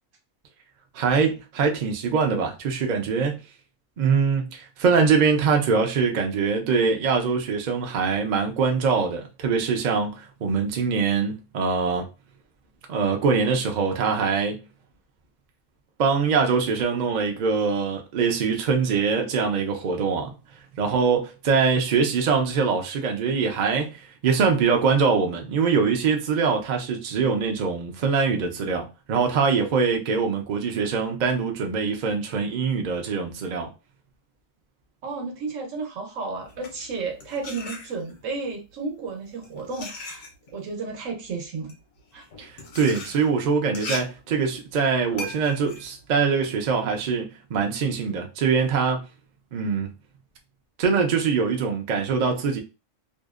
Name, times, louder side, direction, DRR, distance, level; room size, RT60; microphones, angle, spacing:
voice 1, 0.9-3.4 4.0-12.1 12.9-14.6 16.0-20.4 20.8-33.7 42.4-49.0 49.5-49.9 50.8-52.6, right 5 dB, 55° right, 0.5 m, -23 dB
voice 2, 35.0-41.7 42.1-42.3, right 4 dB, 80° right, 1.1 m, -33 dB
sound 1, 36.4-38.3 39.1-47.0, left 3 dB, 70° left, 1.0 m, -39 dB
2.6 x 2.0 x 2.3 m
omnidirectional pair, 1.3 m